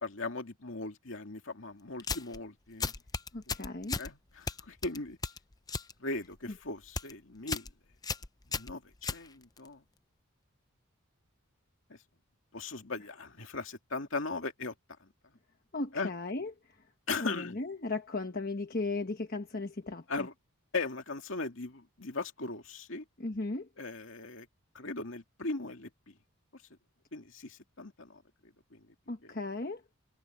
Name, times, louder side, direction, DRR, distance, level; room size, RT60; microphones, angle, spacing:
voice 1, 0.0-2.9 4.0-5.2 6.0-7.7 8.5-9.8 11.9-12.0 12.5-14.7 15.9-16.1 17.1-17.6 20.1-20.3 20.7-23.0 23.8-24.5 24.7-26.1 27.1-28.2 28.7-28.9 29.2-29.3, left 3 dB, 65° left, 2.5 m, -38 dB
sound 1, 2.0-2.4 2.8-4.1 4.5-5.9 6.2-6.6 6.8-7.1 7.5-7.7 8.0-9.7, left 4 dB, 20° left, 0.5 m, -36 dB
voice 2, 3.3-4.0 15.7-16.5 17.2-20.3 23.2-23.7 29.1-29.8, left 3 dB, 45° left, 1.2 m, -36 dB
head